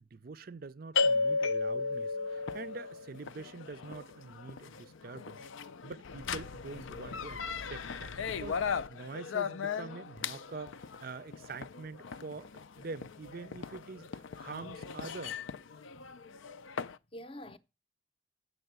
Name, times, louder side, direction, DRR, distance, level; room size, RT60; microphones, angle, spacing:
voice 1, 0.0-15.4, right 4 dB, 45° right, 0.5 m, -46 dB
sound 1, 0.9-17.0, left 4 dB, 75° left, 0.5 m, -36 dB
voice 2, 17.1-17.6, equal, 25° left, 0.6 m, -47 dB
8.1 x 6.9 x 8.0 m
head